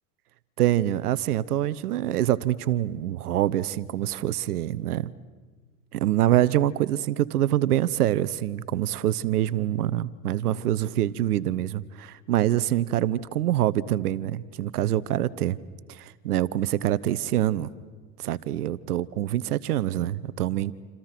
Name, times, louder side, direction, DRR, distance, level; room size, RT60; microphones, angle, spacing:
voice 1, 0.6-5.1 5.9-15.6 16.0-17.7 18.2-20.7, right 13 dB, 75° right, 19 dB, 1.1 m, -25 dB
28.5 x 27.5 x 6.0 m, 1.4 s
hypercardioid pair, 105°, 45 cm